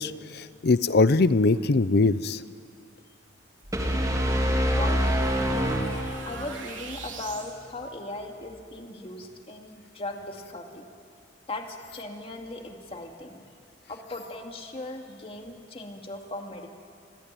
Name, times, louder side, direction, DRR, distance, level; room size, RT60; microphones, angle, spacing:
voice 1, 0.0-2.4, left 3 dB, 60° left, 15 dB, 0.6 m, -22 dB
sound 1, 3.6-7.5, right 5 dB, 90° right, 3.5 m, -44 dB
sound 2, 3.7-6.6, equal, 20° right, 3.2 m, -25 dB
voice 2, 4.5-10.9 11.5-13.5 13.9-16.7, left 2 dB, 30° left, 3 dB, 2.3 m, -38 dB
28.0 x 21.5 x 9.1 m, 2.3 s
head